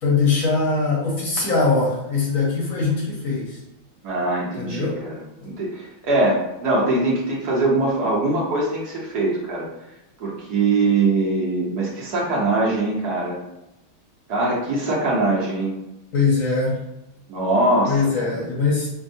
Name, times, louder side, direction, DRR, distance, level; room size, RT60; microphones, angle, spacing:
voice 1, 0.0-3.6 4.6-5.0 5.4-5.5 16.1-16.8 17.9-18.9, left 4 dB, 55° left, -3 dB, 1.1 m, -21 dB
voice 2, 4.0-9.6 10.2-13.4 14.3-15.7 17.3-18.4, right 2 dB, 60° right, -3 dB, 1.3 m, -22 dB
6.1 x 2.1 x 2.6 m, 0.90 s
omnidirectional pair, 2.2 m